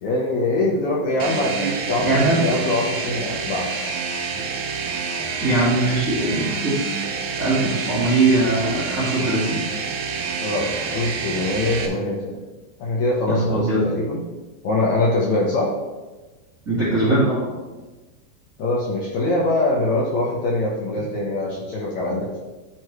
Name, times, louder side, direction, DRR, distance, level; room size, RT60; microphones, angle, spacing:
voice 1, 0.0-3.9 10.4-12.4 12.8-14.2 14.6-15.7 18.6-22.4, left 2 dB, 70° left, -4 dB, 1.8 m, -23 dB
sound 1, 1.2-11.9, right 5 dB, 75° right, 1.8 m, -28 dB
voice 2, 1.9-2.4 5.4-6.9 7.4-9.8 13.3-13.9 16.6-17.5 20.9-21.1, right 2 dB, 35° right, -9 dB, 1.3 m, -21 dB
10.5 x 4.6 x 3.2 m, 1.2 s
omnidirectional pair, 4.3 m